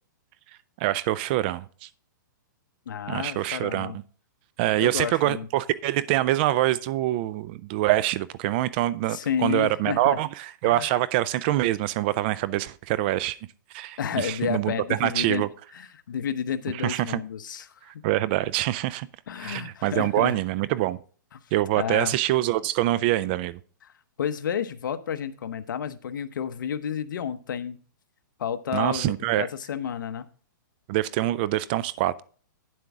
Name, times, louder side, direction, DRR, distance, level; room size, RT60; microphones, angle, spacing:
voice 1, 0.8-1.9 3.1-4.0 4.6-13.4 13.7-15.5 16.7-17.2 17.9-19.1 19.4-21.0 21.5-23.6 28.7-29.5 30.9-32.2, right 15 dB, 30° right, 0.3 m, -25 dB
voice 2, 2.9-4.0 4.8-5.5 9.1-10.2 10.6-11.0 14.0-15.4 15.7-17.9 19.3-20.4 21.3-21.4 21.8-22.1 23.8-23.9 24.2-27.8 28.4-30.3, left 8 dB, 70° left, 0.9 m, -31 dB
9.4 x 7.7 x 3.6 m
hypercardioid pair, 155°, 11 cm